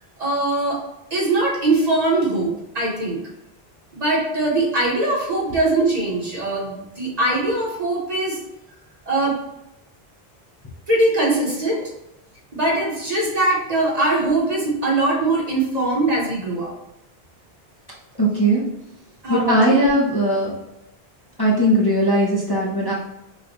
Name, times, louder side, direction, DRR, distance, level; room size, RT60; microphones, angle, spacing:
voice 1, 0.2-0.8 1.1-3.2 3.9-8.4 9.1-9.4 10.9-11.9 12.5-16.7 19.2-19.6, right 2 dB, 40° right, -3 dB, 1.2 m, -21 dB
voice 2, 18.2-18.6 19.3-20.5 21.4-22.9, right 1 dB, 25° left, -5 dB, 0.8 m, -18 dB
5.7 x 2.5 x 3.0 m, 0.88 s
omnidirectional pair, 1.0 m